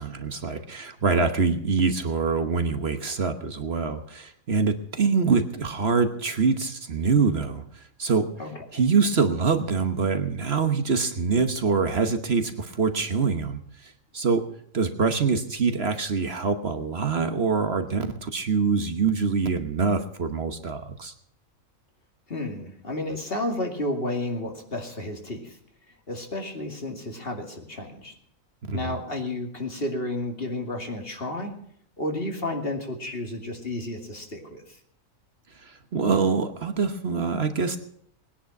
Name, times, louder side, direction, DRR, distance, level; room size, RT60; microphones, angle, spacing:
voice 1, 0.0-8.3 8.7-14.5 14.7-21.1 28.7-28.9 35.5-37.8, right 5 dB, 50° right, 8 dB, 1.3 m, -25 dB
voice 2, 8.4-8.8 22.3-25.6 26.1-28.1 28.7-31.5 32.0-34.8, left 1 dB, 45° left, 3 dB, 2.7 m, -32 dB
20.0 x 10.5 x 5.9 m, 0.69 s
omnidirectional pair, 1.4 m